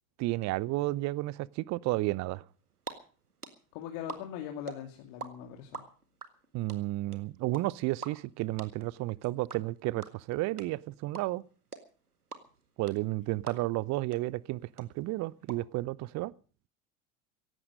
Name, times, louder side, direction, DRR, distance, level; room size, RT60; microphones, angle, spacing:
voice 1, 0.2-2.4 6.5-11.4 12.8-16.3, right 19 dB, 40° right, 0.7 m, -32 dB
sound 1, 2.5-2.9 3.2-5.3 5.5-13.9 14.1-14.2 14.5-15.5, right 5 dB, 85° right, 1.9 m, -43 dB
voice 2, 3.7-5.9, left 10 dB, 50° left, 2.5 m, -41 dB
17.0 x 15.5 x 5.2 m
figure-of-eight pair, 75°, 44 cm